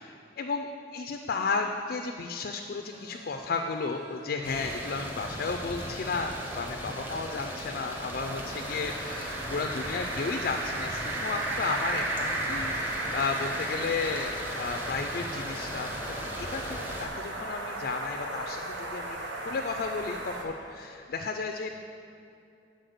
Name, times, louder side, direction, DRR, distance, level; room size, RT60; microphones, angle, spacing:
voice 1, 0.9-19.2 19.4-21.7, left 4 dB, 55° left, 4 dB, 0.4 m, -33 dB
sound 1, 2.7-10.9 12.5-13.1 15.2-15.3 17.4-17.5 18.1-20.9, right 2 dB, 65° right, 1.5 m, -54 dB
sound 2, 4.4-17.1, equal, 10° right, 0.8 m, -38 dB
sound 3, 8.2-20.4, right 2 dB, 80° right, 0.8 m, -35 dB
7.8 x 4.1 x 6.5 m, 2.5 s
head